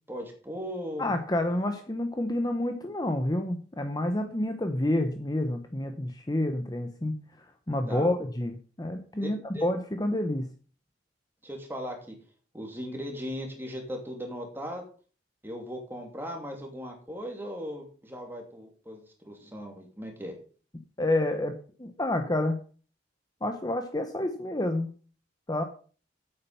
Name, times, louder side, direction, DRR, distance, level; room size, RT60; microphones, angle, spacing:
voice 1, 0.1-1.1 7.9-8.1 9.2-9.7 11.4-12.1 12.5-14.8 15.4-20.3, equal, 10° right, 2 dB, 2.7 m, -38 dB
voice 2, 1.0-7.2 7.7-10.5 21.0-22.6 23.4-24.9 25.5-25.6, left 1 dB, 20° left, 6 dB, 0.9 m, -29 dB
8.9 x 8.8 x 5.6 m, 0.40 s
head